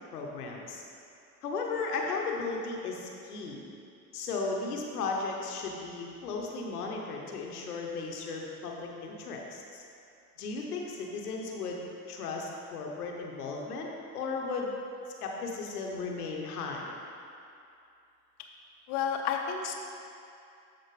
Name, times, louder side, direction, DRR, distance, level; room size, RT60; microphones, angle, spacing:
voice 1, 0.1-0.8 1.4-3.7 4.1-9.8 10.4-11.8 12.1-13.9 14.1-14.7 15.2-16.9, left 4 dB, 85° left, 0 dB, 0.9 m, -35 dB
voice 2, 18.9-19.7, left 7 dB, 60° left, 2 dB, 0.7 m, -30 dB
12.5 x 4.3 x 3.1 m, 2.6 s
hypercardioid pair, 60°, 45 cm